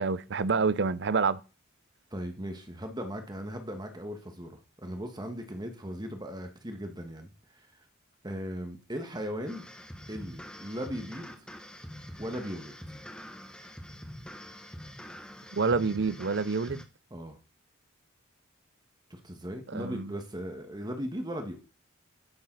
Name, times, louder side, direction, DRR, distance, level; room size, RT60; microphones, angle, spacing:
voice 1, 0.0-1.4 15.5-16.8 19.7-20.1, right 4 dB, 55° right, 0.6 m, -27 dB
voice 2, 2.1-7.3 8.2-9.7 10.1-11.3 12.2-12.7 17.1-17.4 19.1-21.6, equal, 20° right, 1.7 m, -38 dB
sound 1, 9.5-16.8, equal, 5° left, 1.4 m, -45 dB
12.0 x 11.0 x 4.1 m
head